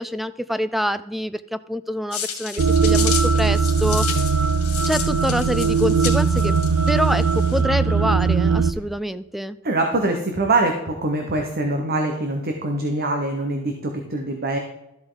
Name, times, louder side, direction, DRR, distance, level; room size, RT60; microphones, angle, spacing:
voice 1, 0.0-4.3 4.9-6.6 6.9-9.6, equal, ahead, 14 dB, 0.4 m, -26 dB
sound 1, 2.1-7.6, left 8 dB, 70° left, 2.2 m, -32 dB
sound 2, 2.6-8.7, right 5 dB, 90° right, 0.6 m, -19 dB
voice 2, 9.6-14.6, right 2 dB, 45° right, 3 dB, 1.1 m, -23 dB
13.0 x 8.0 x 3.9 m, 0.90 s
head